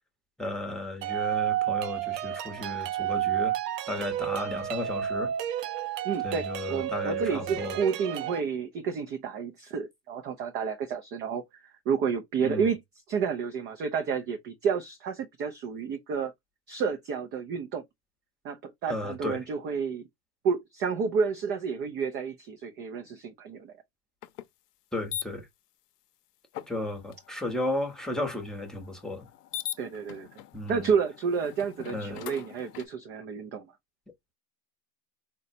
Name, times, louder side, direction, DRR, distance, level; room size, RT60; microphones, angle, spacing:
voice 1, 0.4-3.6 3.9-5.3 6.2-7.8 12.4-12.7 18.9-19.4 24.9-25.5 26.7-29.3 30.5-30.9 31.9-32.2, left 2 dB, ahead, 0.8 m, -34 dB
sound 1, 1.0-8.4, right 12 dB, 85° right, 0.6 m, -31 dB
voice 2, 6.0-12.8 13.1-16.3 16.7-17.8 18.4-20.0 20.4-23.7 29.8-30.3 30.7-33.7, right 6 dB, 25° right, 0.3 m, -30 dB
sound 2, 24.2-24.5 25.1-25.2 26.5-32.9, left 13 dB, 85° left, 0.6 m, -42 dB
3.9 x 2.1 x 2.6 m
hypercardioid pair, 115°, 47 cm